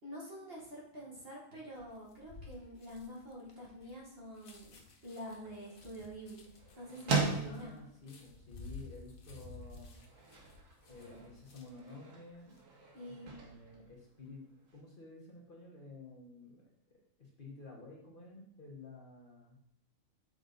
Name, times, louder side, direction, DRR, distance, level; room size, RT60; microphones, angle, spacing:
voice 1, 0.0-4.7 5.0-6.5 6.8-7.7 12.9-13.3, equal, 45° right, -5 dB, 1.9 m, -47 dB
sound 1, 1.7-11.9 12.3-12.6, left 3 dB, 90° left, 1.4 m, -54 dB
sound 2, 5.0-14.8, right 4 dB, 70° right, 1.4 m, -41 dB
voice 2, 7.4-10.0 10.9-12.6 13.1-14.4 14.7-16.6 17.2-19.6, left 3 dB, 40° left, -3 dB, 1.3 m, -52 dB
6.5 x 3.9 x 3.9 m, 0.73 s
omnidirectional pair, 1.4 m